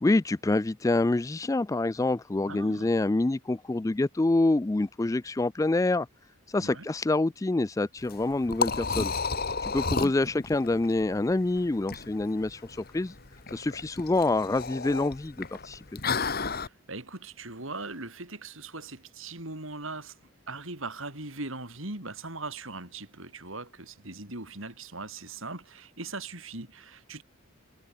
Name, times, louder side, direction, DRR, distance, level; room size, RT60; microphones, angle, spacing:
voice 1, 0.0-6.1 6.5-9.1 9.6-12.6 12.9-13.1 13.5-16.0, left 2 dB, 15° left, 0.3 m, -26 dB
voice 2, 2.5-2.9 6.6-6.9 9.8-10.4 16.5-27.2, right 3 dB, 70° right, 5.3 m, -40 dB
Liquid, 8.0-16.7, left 4 dB, 45° left, 2.0 m, -33 dB
head